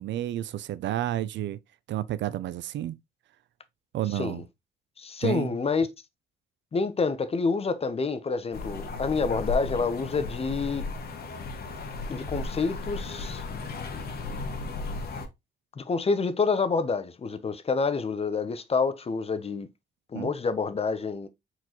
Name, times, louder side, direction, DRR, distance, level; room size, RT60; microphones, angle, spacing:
voice 1, 0.0-1.6 1.9-3.0 3.9-4.4 5.2-5.6 20.1-20.3, right 12 dB, 65° right, 0.4 m, -30 dB
voice 2, 5.0-5.9 6.7-10.8 12.1-13.4 15.8-19.7 20.1-21.3, left 4 dB, 30° left, 0.7 m, -28 dB
sound 1, 8.5-15.3, left 3 dB, 50° left, 1.0 m, -35 dB
4.5 x 3.9 x 2.9 m
cardioid pair, 90°, 20 cm